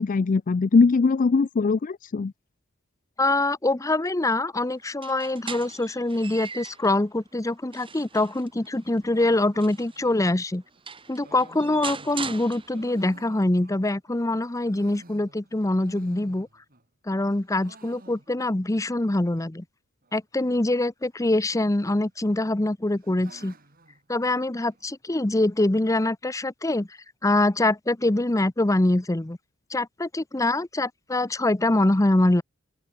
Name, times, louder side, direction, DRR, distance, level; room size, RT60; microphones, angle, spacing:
voice 1, 0.0-2.3, left 4 dB, 40° left, 0.4 m, -21 dB
voice 2, 3.2-10.6 11.1-16.5 17.1-19.6 20.1-23.5 24.1-26.9 27.2-29.4 29.7-32.4, left 2 dB, 15° left, 0.7 m, -24 dB
sound 1, 4.9-6.9 7.4-10.0 10.5-10.6 10.9-13.1, right 5 dB, 25° right, 2.5 m, -39 dB
sound 2, 9.1-14.1 14.5-16.9 17.1-18.7 19.0-19.1 19.3-19.4 20.0-20.4 21.5-22.1 22.4-24.9, right 2 dB, 45° right, 5.2 m, -53 dB
open air
head